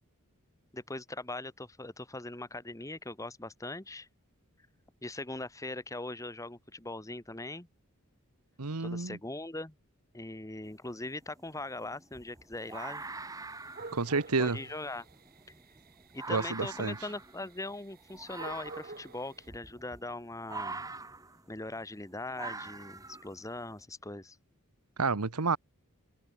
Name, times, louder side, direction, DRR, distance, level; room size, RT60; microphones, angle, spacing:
voice 1, 0.7-4.1 5.0-7.7 8.8-9.7 10.1-13.0 14.4-15.0 16.1-20.8 21.5-24.4, left 2 dB, 15° left, 1.4 m, -40 dB
voice 2, 8.6-9.2 13.9-14.6 16.3-17.0 25.0-25.6, right 4 dB, 85° right, 1.3 m, -30 dB
sound 1, 10.6-10.8 11.2-23.7, right 3 dB, 15° right, 1.5 m, -45 dB
sound 2, 12.6-19.5, right 3 dB, 45° right, 2.6 m, -50 dB
head